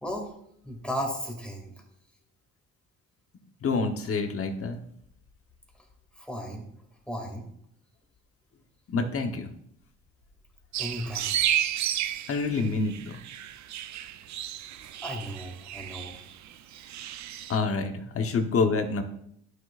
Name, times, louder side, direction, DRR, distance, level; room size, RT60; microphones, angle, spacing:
voice 1, 0.0-0.3 0.6-1.7 6.2-6.7 7.1-7.5 10.8-11.3 15.0-16.1, equal, 5° left, 0 dB, 2.4 m, -35 dB
voice 2, 3.6-4.8 8.9-9.5 12.3-13.2 17.5-19.0, left 4 dB, 50° left, 6 dB, 1.1 m, -27 dB
sound 1, 10.7-17.6, right 11 dB, 65° right, 0.5 m, -32 dB
11.5 x 6.3 x 2.5 m, 0.70 s
cardioid pair, 90°, 30 cm